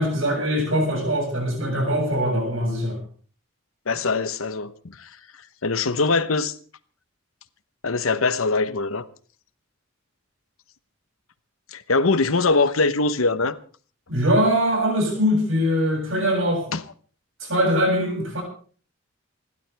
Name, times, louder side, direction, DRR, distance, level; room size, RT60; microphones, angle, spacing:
voice 1, 0.0-3.0 14.1-16.6 17.4-18.4, equal, 75° right, 7.5 m, -22 dB
voice 2, 3.9-5.1 5.6-6.6 7.8-9.0 11.7-13.6 16.7-16.8, left 3 dB, 85° left, 1.1 m, -22 dB
28.5 x 12.5 x 3.5 m
head